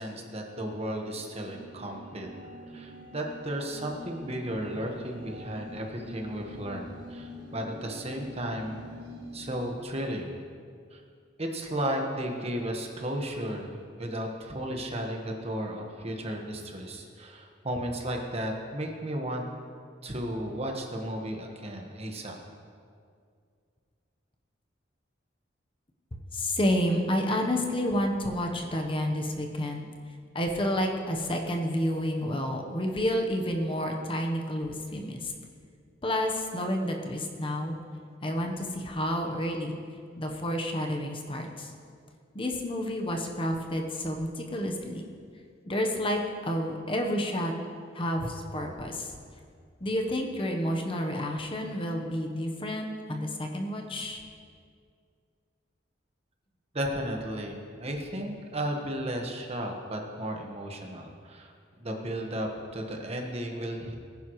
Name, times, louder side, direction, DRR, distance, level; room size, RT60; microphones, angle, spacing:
voice 1, 0.0-2.3 2.7-8.8 9.3-10.4 10.9-11.0 11.4-19.4 20.0-22.4 56.7-64.0, right 1 dB, 35° right, 2 dB, 1.4 m, -34 dB
sound 1, 0.6-9.6, equal, 70° right, 3.5 m, -45 dB
voice 2, 26.1-29.8 30.3-35.3 36.0-37.8 38.2-39.8 40.2-41.7 42.3-45.1 45.7-47.5 47.9-49.1 49.8-54.2, equal, 30° left, 2 dB, 1.0 m, -30 dB
20.0 x 10.5 x 3.2 m, 2.2 s
head